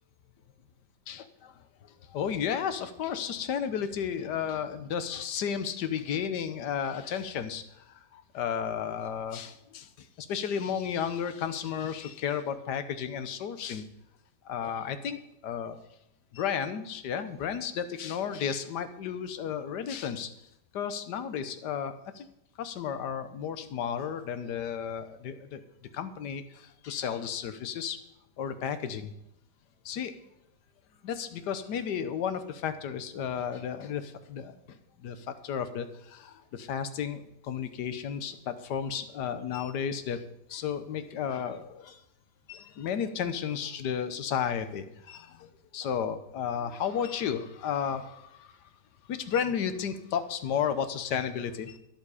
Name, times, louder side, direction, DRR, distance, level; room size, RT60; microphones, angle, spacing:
voice 1, 1.8-13.8 14.4-15.8 16.3-20.3 20.7-22.3 22.6-25.6 25.9-28.0 28.4-29.1 29.8-30.1 31.0-40.2 40.5-42.0 42.5-48.5 49.1-51.8, left 8 dB, 65° left, 11 dB, 1.4 m, -33 dB
12.0 x 11.0 x 4.9 m, 0.80 s
omnidirectional pair, 2.0 m